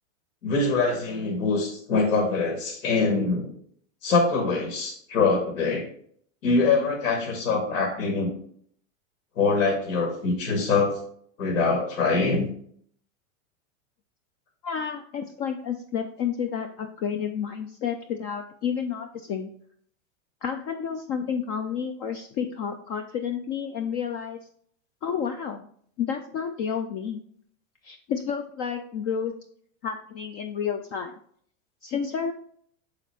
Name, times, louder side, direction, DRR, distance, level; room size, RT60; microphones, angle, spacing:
voice 1, 0.4-3.5 4.0-5.8 6.4-8.3 9.4-11.0 11.4-12.4, left 4 dB, 85° left, 1 dB, 2.0 m, -24 dB
voice 2, 14.6-19.5 20.4-24.4 25.0-25.7 26.0-27.2 27.8-29.3 29.8-31.2 31.8-32.3, left 7 dB, 30° left, 5 dB, 0.4 m, -30 dB
6.5 x 4.1 x 4.2 m, 0.62 s
supercardioid pair, 135°, 39 cm